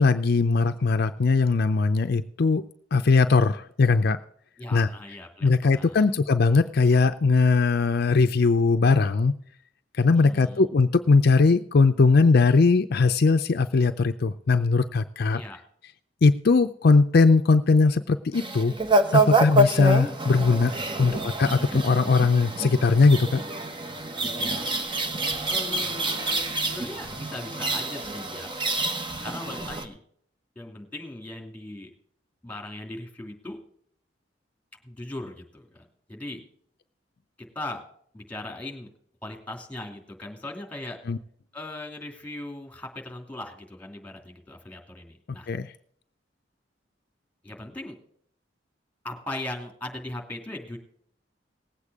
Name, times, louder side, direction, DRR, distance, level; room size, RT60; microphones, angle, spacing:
voice 1, 0.0-2.6 2.9-4.2 4.7-4.9 5.4-9.3 10.0-15.4 16.2-18.7 19.1-20.7 21.0-23.4 41.1-41.2 45.5-45.7, left 4 dB, 55° left, 8 dB, 0.5 m, -20 dB
voice 2, 4.6-6.1 10.1-10.6 15.3-15.6 20.8-21.2 24.4-24.7 25.0-26.3 26.7-28.5 29.2-30.0 30.6-31.9 32.4-33.6 34.8-36.4 37.4-37.8 38.1-38.9 39.2-41.0 41.5-45.5 47.4-47.9 49.0-50.8, left 1 dB, 10° left, 2 dB, 2.6 m, -39 dB
sound 1, 18.3-29.9, right 2 dB, 25° right, 1.2 m, -27 dB
19.0 x 8.3 x 3.6 m, 0.63 s
head